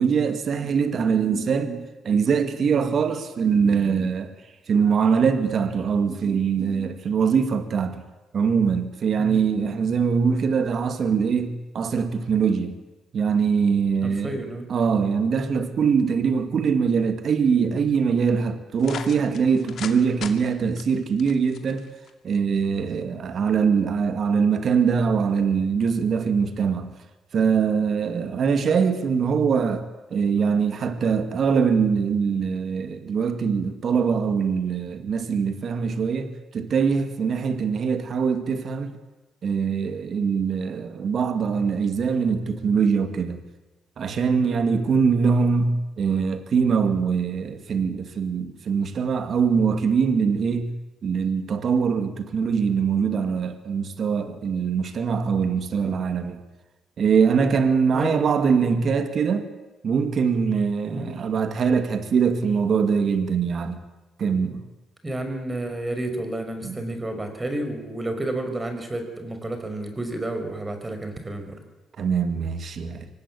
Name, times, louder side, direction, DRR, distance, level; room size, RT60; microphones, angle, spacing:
voice 1, 0.0-4.3 4.7-8.0 8.3-12.8 13.1-14.4 14.7-21.8 22.2-27.0 27.3-29.9 30.1-39.0 39.4-43.4 44.0-50.7 51.0-56.4 57.0-59.5 59.8-63.8 64.2-64.6 66.6-66.8 72.0-73.1, right 6 dB, 55° right, 2.2 m, -23 dB
voice 2, 14.0-14.7 44.4-44.9 57.9-58.3 58.6-58.9 60.9-61.1 65.0-71.6, right 1 dB, 20° right, 5.5 m, -31 dB
sound 1, 18.8-20.0 20.2-20.3 20.8-22.1, left 8 dB, 65° left, 2.5 m, -36 dB
24.5 x 18.5 x 8.7 m
cardioid pair, 90°, 0 cm